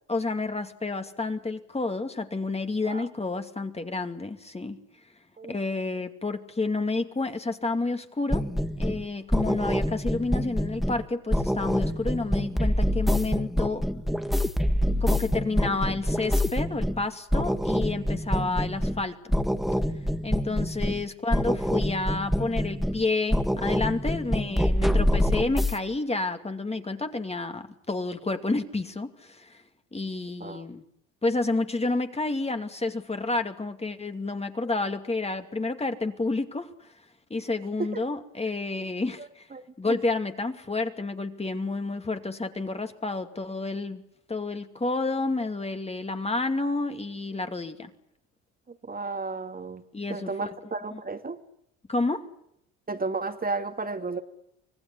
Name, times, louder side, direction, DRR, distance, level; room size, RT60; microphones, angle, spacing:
voice 1, 0.1-4.8 5.5-8.5 8.8-13.8 15.0-19.3 20.2-29.6 29.9-30.8 31.2-36.7 37.3-39.5 39.8-44.0 44.3-47.9 49.9-50.5 50.9-51.0 51.9-52.2, left 3 dB, 15° left, 7 dB, 2.6 m, -30 dB
sound 1, 8.3-9.0 9.3-11.0 11.3-17.0 17.3-19.0 19.3-21.0 21.3-23.0 23.3-25.7, equal, ahead, 1.6 m, -26 dB
voice 2, 39.5-40.0 48.7-49.8 50.1-51.4 52.9-54.2, right 3 dB, 25° right, 7 dB, 2.3 m, -33 dB
25.5 x 18.5 x 9.9 m, 0.74 s
supercardioid pair, 85°, 37 cm